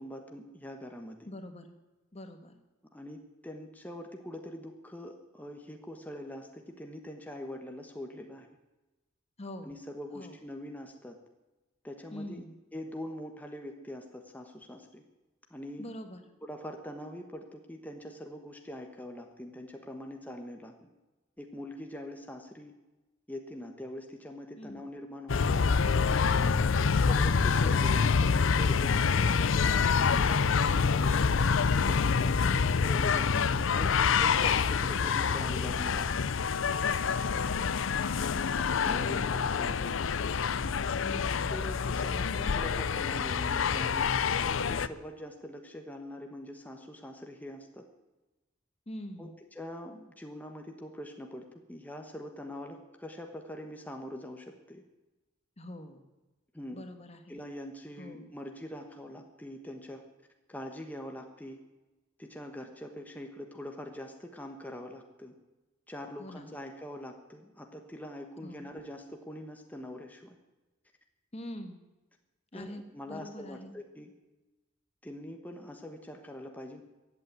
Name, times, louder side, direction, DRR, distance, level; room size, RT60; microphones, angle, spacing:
voice 1, 0.0-1.3 2.9-8.5 9.6-11.2 11.8-12.4 12.7-15.0 15.5-15.9 16.4-20.9 21.4-22.7 23.3-26.1 26.8-31.3 31.7-36.3 38.5-40.1 41.5-47.8 49.2-54.8 56.5-56.8 57.3-60.0 60.5-61.6 62.2-65.3 65.9-70.4 72.5-74.1 75.0-76.8, left 1 dB, 10° left, 3 dB, 1.2 m, -43 dB
voice 2, 1.3-1.7 2.1-2.6 9.4-9.7 10.1-10.4 12.1-12.6 15.8-16.2 24.6-24.8 26.4-26.9 33.3-33.7 38.9-39.5 41.0-41.5 48.9-49.4 55.6-56.0 56.7-57.4 58.0-58.3 66.2-66.5 68.4-68.7 71.3-71.8 72.5-73.7, left 1 dB, 35° left, 7 dB, 1.4 m, -44 dB
sound 1, 25.3-44.9, left 5 dB, 80° left, 0.5 m, -27 dB
15.0 x 8.6 x 9.2 m, 1.1 s
head